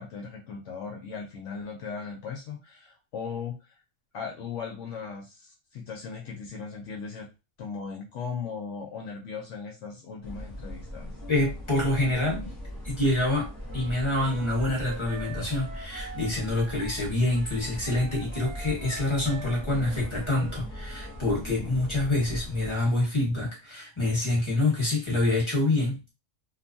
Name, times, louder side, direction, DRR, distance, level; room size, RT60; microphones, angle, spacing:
voice 1, 0.0-3.8 4.1-7.3 7.6-11.2, left 5 dB, 70° left, 0 dB, 0.9 m, -38 dB
sound 1, 10.2-22.7, equal, 20° right, 0.7 m, -39 dB
voice 2, 11.3-12.5 12.8-13.5 13.7-26.1, left 2 dB, 25° left, -3 dB, 1.2 m, -26 dB
Wind instrument woodwind instrument, 13.7-21.2, right 4 dB, 65° right, 0.9 m, -45 dB
2.8 x 2.2 x 2.6 m, 0.28 s
omnidirectional pair, 1.4 m